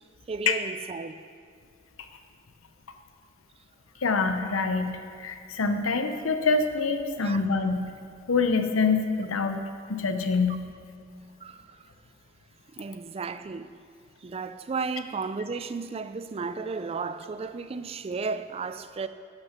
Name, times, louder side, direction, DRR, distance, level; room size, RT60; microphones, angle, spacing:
voice 1, 0.3-1.2 7.1-7.4 11.4-11.9 12.7-13.7 14.2-19.1, right 4 dB, 30° right, 0.3 m, -34 dB
voice 2, 4.0-7.9 8.3-9.6 9.9-10.6, left 4 dB, 90° left, 0.8 m, -25 dB
11.5 x 6.7 x 5.8 m
head